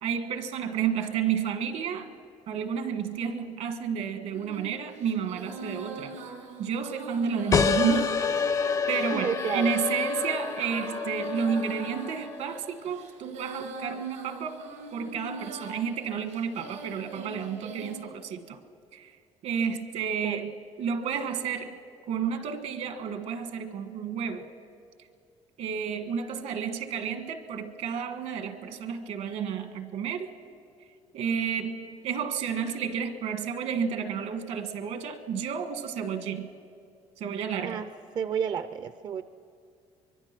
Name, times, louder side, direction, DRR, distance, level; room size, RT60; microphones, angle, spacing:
voice 1, 0.0-2.1 2.5-6.2 6.6-8.2 8.9-14.6 14.9-18.6 18.9-19.1 19.4-21.8 22.1-24.5 25.6-30.3 31.1-36.5 37.2-37.8, right 7 dB, 70° right, 8 dB, 1.5 m, -31 dB
Female singing, 4.3-18.0, right 2 dB, 85° right, 5.0 m, -42 dB
sound 1, 7.5-12.7, left 6 dB, 25° left, 0.4 m, -28 dB
voice 2, 9.1-9.7 20.2-20.4 37.6-37.9 38.1-39.2, right 8 dB, 35° right, 12 dB, 0.4 m, -31 dB
24.0 x 23.0 x 6.0 m, 2.4 s
cardioid pair, 170°, 12 cm